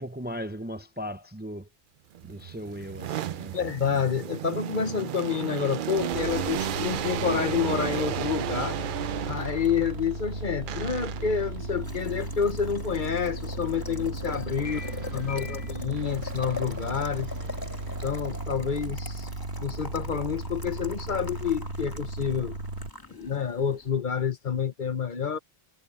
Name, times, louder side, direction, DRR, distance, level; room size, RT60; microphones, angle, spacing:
voice 1, 0.0-1.7 2.3-3.6 14.6-15.7, equal, 10° right, 0.6 m, -38 dB
sound 1, 2.1-9.8 10.7-11.5 14.6-15.5 15.9-18.3, right 11 dB, 60° right, 0.6 m, -34 dB
voice 2, 3.5-8.8 9.3-14.8 15.1-17.3 18.0-19.3 19.6-22.5 23.1-25.4, left 7 dB, 55° left, 1.0 m, -28 dB
Boiling, 6.0-23.9, left 2 dB, 20° left, 1.9 m, -43 dB
sound 2, 6.1-22.9, right 2 dB, 80° right, 1.7 m, -36 dB
omnidirectional pair, 1.0 m